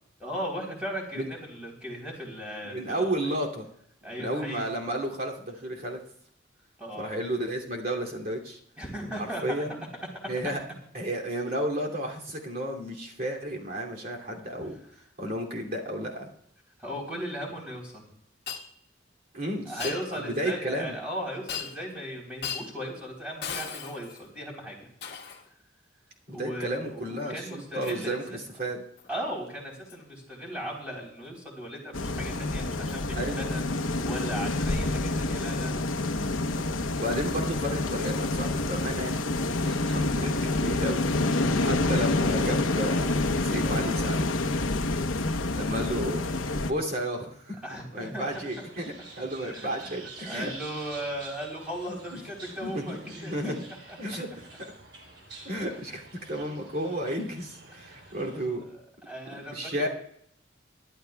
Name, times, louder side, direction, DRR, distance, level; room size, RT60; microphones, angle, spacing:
voice 1, 0.2-3.2 4.0-4.7 6.8-7.1 8.8-9.6 16.8-18.1 19.7-24.9 26.3-28.4 29.1-35.8 39.6-40.1 45.7-45.9 47.6-48.4 49.4-53.5 53.9-54.0 55.7-55.8 57.7-58.8 59.1-59.9, equal, 5° right, -2 dB, 3.6 m, -37 dB
voice 2, 2.6-3.7 4.2-6.0 6.9-8.6 9.2-9.8 10.3-10.6 10.9-14.8 15.2-16.3 19.3-21.0 26.3-28.8 33.2-33.4 37.0-39.2 39.6-44.3 45.5-46.2 46.5-47.6 47.9-50.5 51.9-52.2 52.6-53.6 54.0-54.7 55.4-58.6 59.5-59.9, right 1 dB, 45° right, -1 dB, 2.7 m, -32 dB
Shatter, 18.5-18.7 19.8-20.0 21.5-21.9 22.4-22.7 23.4-24.3 25.0-25.5 27.8-28.0 29.0-29.1 29.9-30.0 32.9-33.0 34.1-34.2, left 7 dB, 55° left, 1.4 m, -37 dB
sound 1, 31.9-46.7, left 2 dB, 90° left, 0.9 m, -27 dB
sound 2, 48.3-58.4, right 3 dB, 60° right, 3.6 m, -48 dB
25.0 x 11.5 x 2.3 m, 0.68 s
head